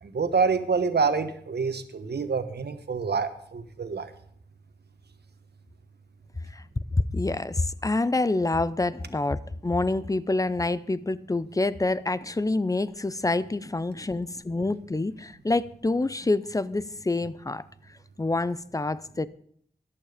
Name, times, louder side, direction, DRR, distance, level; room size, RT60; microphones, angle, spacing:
voice 1, 0.0-4.1, right 5 dB, 80° right, 1.3 m, -27 dB
voice 2, 7.1-17.6 18.2-19.3, left 2 dB, 20° left, 0.6 m, -27 dB
13.5 x 11.5 x 5.0 m
wide cardioid pair, 105°, 17 cm